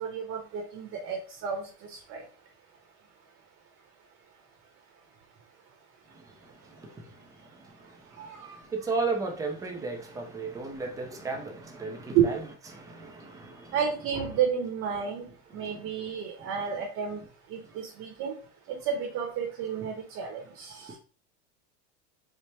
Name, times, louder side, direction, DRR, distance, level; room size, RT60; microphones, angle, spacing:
voice 1, 0.0-1.6 2.1-2.2 8.2-8.6 12.1-12.3 13.7-15.3 15.5-17.2 17.5-18.3 18.7-21.0, right 8 dB, 40° right, 0.8 m, -31 dB
voice 2, 6.1-12.4 12.7-13.7 15.6-15.9 16.4-16.5, right 3 dB, 10° right, 0.4 m, -36 dB
4.3 x 2.1 x 3.2 m
supercardioid pair, 155°, 35 cm